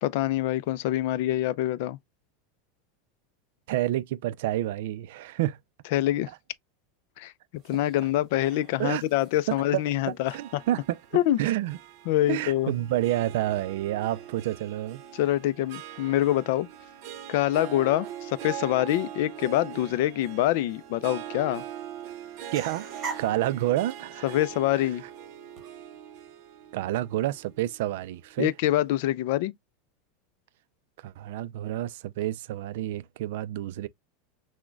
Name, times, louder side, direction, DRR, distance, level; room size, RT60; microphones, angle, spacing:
voice 1, 0.0-2.0 5.9-6.3 7.2-7.3 7.7-10.6 11.1-11.4 12.1-12.7 15.1-16.7 17.3-21.6 24.2-25.0 28.4-29.5, left 14 dB, 60° left, 0.3 m, -25 dB
voice 2, 3.7-5.6 8.8-9.0 9.5-11.0 11.4-11.8 12.3-15.0 22.5-24.4 26.7-28.5 31.0-33.9, right 14 dB, 70° right, 0.3 m, -29 dB
sound 1, 7.5-25.7, right 5 dB, 25° right, 1.7 m, -49 dB
Harp, 10.2-28.7, right 10 dB, 50° right, 0.8 m, -42 dB
6.0 x 2.1 x 2.2 m
supercardioid pair, 155°, 0 cm